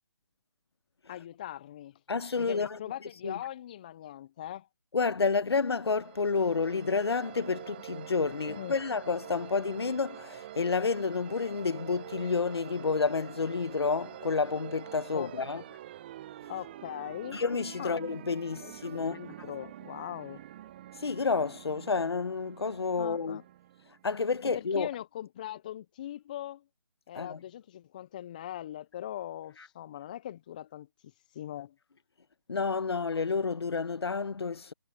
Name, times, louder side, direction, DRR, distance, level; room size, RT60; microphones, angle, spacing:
voice 1, 1.1-2.0 2.4-4.7 8.5-8.8 15.1-15.6 16.5-17.4 17.8-18.0 18.5-20.4 23.0-23.4 24.4-26.6 27.1-30.9 31.3-31.8, left 12 dB, 20° left, 0.3 m, -41 dB
voice 2, 2.1-2.8 3.2-3.4 4.9-15.6 17.3-19.2 21.0-23.4 24.0-24.9 27.1-27.4 32.5-34.7, left 4 dB, 80° left, 1.0 m, -30 dB
sound 1, 5.6-24.3, right 12 dB, 25° right, 0.6 m, -47 dB
figure-of-eight pair, 155°, 13 cm